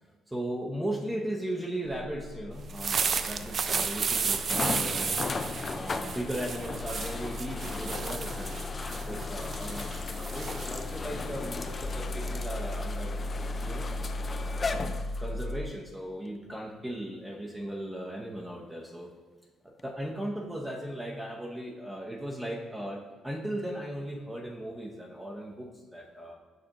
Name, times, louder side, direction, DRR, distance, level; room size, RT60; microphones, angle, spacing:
voice 1, 0.3-5.2 5.7-13.2 13.6-13.9 14.2-14.7 15.2-19.1 19.8-23.0 23.2-26.3, right 1 dB, 10° right, -2 dB, 0.7 m, -37 dB
sound 1, 1.8-15.7, left 2 dB, 60° left, 1.7 m, -38 dB
sound 2, 2.6-11.9, right 6 dB, 45° right, 0.3 m, -33 dB
sound 3, 3.4-3.5 4.5-15.5 16.3-16.4 19.8-19.9, left 4 dB, 35° left, 0.3 m, -37 dB
6.7 x 4.8 x 2.9 m, 1.4 s
cardioid pair, 100°, 0 cm